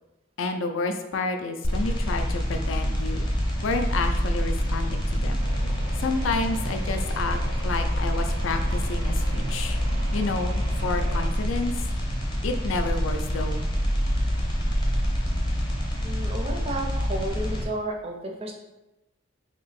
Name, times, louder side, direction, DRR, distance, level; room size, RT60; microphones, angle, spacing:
voice 1, 0.4-3.3 3.6-5.5 6.0-9.8 10.1-11.7 12.4-13.6, left 3 dB, 65° left, 7 dB, 0.4 m, -30 dB
sound 1, 1.6-17.6, equal, 20° left, 0.6 m, -26 dB
sound 2, 5.4-11.3, right 1 dB, 80° right, 0.6 m, -41 dB
voice 2, 16.0-18.5, right 1 dB, 30° right, 2 dB, 0.4 m, -32 dB
2.9 x 2.6 x 4.0 m, 0.98 s
head